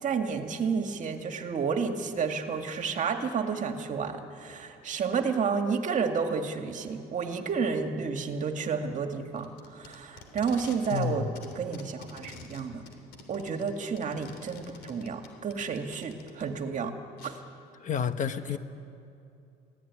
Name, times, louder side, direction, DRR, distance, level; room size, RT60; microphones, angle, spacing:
voice 1, 0.0-11.3 11.6-12.8 13.3-16.9 17.2-17.4, right 5 dB, 50° right, 5 dB, 2.0 m, -31 dB
Packing tape duct tape, 9.4-11.1 11.4-16.4 17.2-17.3, left 4 dB, 75° left, 3.3 m, -47 dB
voice 2, 10.9-11.3 17.8-18.6, left 7 dB, 50° left, 10 dB, 1.1 m, -30 dB
24.0 x 16.5 x 9.7 m, 2.6 s
cardioid pair, 110°, 17 cm